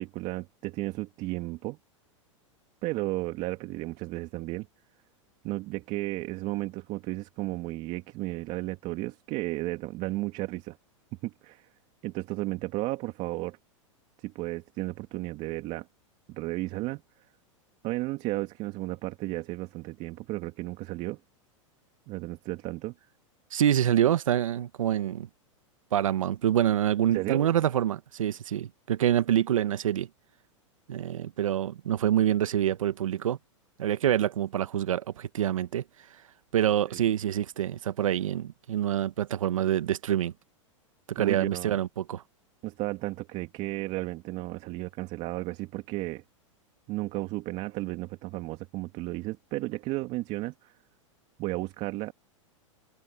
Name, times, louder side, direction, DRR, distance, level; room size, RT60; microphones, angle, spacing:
voice 1, 0.0-1.8 2.8-4.7 5.4-10.8 11.2-11.7 12.0-13.6 14.2-15.9 16.3-17.0 17.8-21.2 22.1-22.9 27.1-27.5 36.9-37.0 41.2-41.8 42.6-46.2 46.9-50.7 51.4-52.1, right 20 dB, 45° right, 2.4 m, -33 dB
voice 2, 23.5-25.3 25.9-30.1 30.9-33.4 33.8-35.8 36.5-40.3 41.1-42.2, right 11 dB, 85° right, 1.1 m, -26 dB
hypercardioid pair, 120°, 17 cm